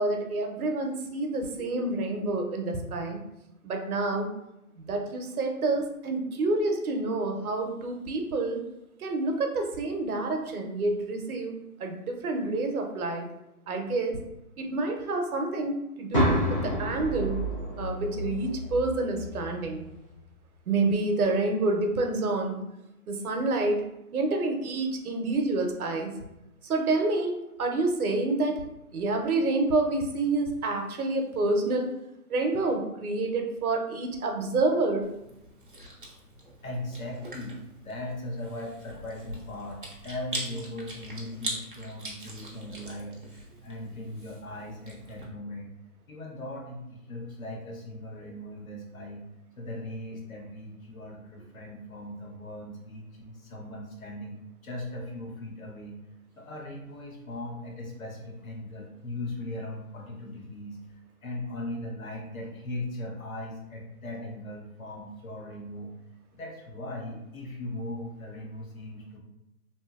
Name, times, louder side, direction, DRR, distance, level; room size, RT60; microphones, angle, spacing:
voice 1, 0.0-3.2 3.6-4.3 4.8-8.6 9.0-11.5 11.8-13.3 13.7-14.2 14.6-17.4 17.8-19.8 20.7-22.6 23.1-23.8 24.1-26.1 26.6-28.5 28.9-31.9 32.3-35.1, right 2 dB, 70° right, 3 dB, 0.7 m, -28 dB
sound 1, 16.1-20.1, equal, 20° left, 0.6 m, -30 dB
Chewing mastication, 35.0-45.2, right 1 dB, 35° right, 0.4 m, -42 dB
voice 2, 36.6-37.6 37.8-45.8 46.1-49.2 49.6-56.0 56.4-60.8 61.2-65.9 66.3-69.2, left 1 dB, 65° left, -1 dB, 1.0 m, -39 dB
2.8 x 2.7 x 2.4 m, 0.88 s
hypercardioid pair, 160°, 45 cm